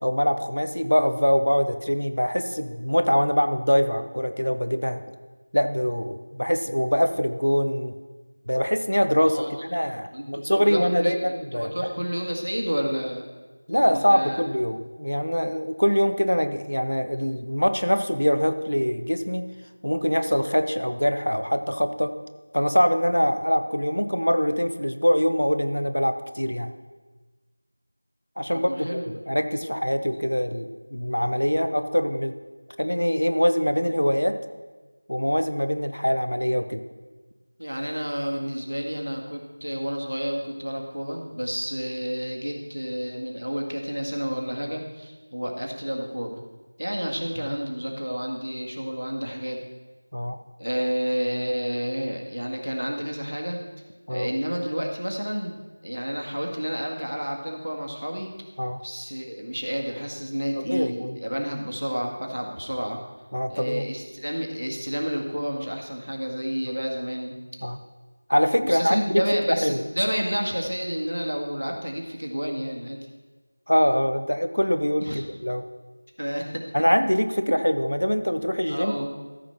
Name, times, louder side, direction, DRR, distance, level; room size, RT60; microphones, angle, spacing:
voice 1, 0.0-5.0 5.5-7.9 8.5-11.7 13.7-19.5 19.8-22.1 22.5-26.7 28.4-32.3 32.8-34.4 35.1-36.8 50.1-50.4 54.1-54.3 58.6-58.8 60.7-61.2 63.3-63.8 67.6-67.8 68.3-69.8 73.7-75.6 76.7-79.0, equal, 80° left, 10 dB, 0.9 m, -23 dB
voice 2, 9.3-13.3 13.8-14.4 28.5-29.2 29.6-29.8 37.6-46.4 46.8-49.6 50.6-53.6 54.1-55.6 55.8-58.3 58.8-63.0 63.5-67.4 68.6-73.0 75.0-75.2 76.2-76.7 78.7-79.1, equal, 80° right, 1 dB, 1.9 m, -30 dB
13.5 x 5.3 x 5.9 m, 1.3 s
figure-of-eight pair, 175°, 0 cm